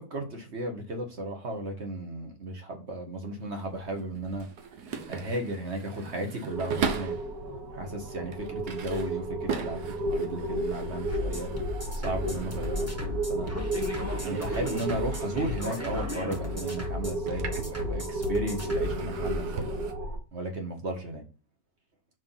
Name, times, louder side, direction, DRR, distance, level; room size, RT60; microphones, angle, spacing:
voice 1, 0.0-4.5 5.1-7.2 7.7-11.5 11.9-13.5 14.2-19.7 20.3-21.2, right 1 dB, 45° right, 3 dB, 1.8 m, -35 dB
sound 1, 3.4-7.3 7.9-13.2 13.4-18.3 18.6-19.9, right 6 dB, 85° right, 1.5 m, -39 dB
sound 2, 6.5-20.2, right 2 dB, 65° right, 2.2 m, -33 dB
sound 3, 11.1-18.9, left 2 dB, 10° right, 1.0 m, -35 dB
5.2 x 5.0 x 5.8 m, 0.32 s
omnidirectional pair, 1.7 m